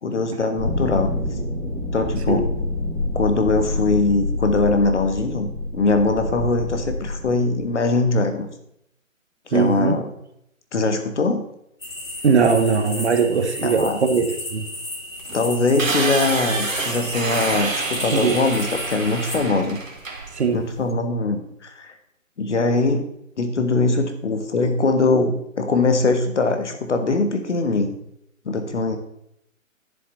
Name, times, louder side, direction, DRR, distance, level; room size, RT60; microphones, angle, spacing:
voice 1, 0.0-1.1 1.9-2.5 3.1-8.5 9.5-10.1 10.7-11.4 13.6-14.0 15.3-19.8 20.5-21.9 22.4-23.1 23.4-28.0 28.4-29.0, left 3 dB, 60° left, 7 dB, 1.7 m, -21 dB
sound 1, 0.6-7.6, left 2 dB, 20° left, 3.3 m, -27 dB
voice 2, 9.5-9.9 12.2-14.7 18.1-18.3 20.3-20.6, right 5 dB, 55° right, 7 dB, 1.4 m, -20 dB
sound 2, 11.8-19.4, left 1 dB, 75° left, 3.3 m, -34 dB
sound 3, 15.2-20.9, right 3 dB, 70° right, 2.0 m, -28 dB
11.0 x 7.6 x 4.1 m, 0.75 s
figure-of-eight pair, 145°, 40 cm